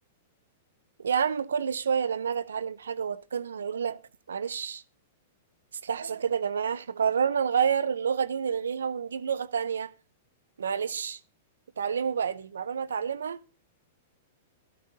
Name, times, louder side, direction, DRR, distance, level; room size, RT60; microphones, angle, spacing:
voice 1, 1.0-4.0 4.3-4.8 5.8-9.9 10.6-11.2 11.8-13.4, right 7 dB, 90° right, 0.5 m, -29 dB
12.5 x 12.0 x 2.7 m
hypercardioid pair, 120°, 0 cm